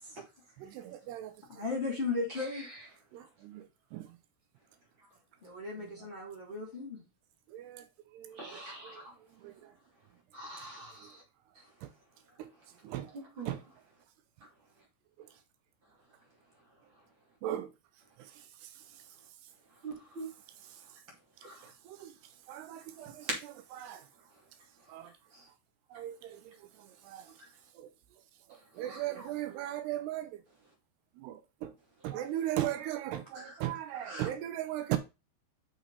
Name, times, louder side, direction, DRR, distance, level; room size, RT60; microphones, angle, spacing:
voice 1, 0.6-1.3 3.1-3.6 3.9-4.0 7.5-7.8 8.2-8.6 9.4-9.5 12.9-13.1 13.5-13.6 17.4-17.7 22.0-22.1 22.5-23.1 23.8-24.0 24.9-25.1 25.9-26.3 27.1-27.2 28.8-30.3 31.2-31.7 32.0-35.0, right 13 dB, 85° right, 2.8 m, -36 dB
voice 2, 1.5-2.7 5.4-7.0, left 3 dB, 15° left, 3.0 m, -35 dB
voice 3, 8.4-9.0 10.3-10.9 13.4-13.5 19.8-20.3 28.8-29.3 33.3-33.5 34.0-34.3, right 2 dB, 30° right, 3.2 m, -44 dB
6.4 x 6.2 x 4.1 m
omnidirectional pair, 4.7 m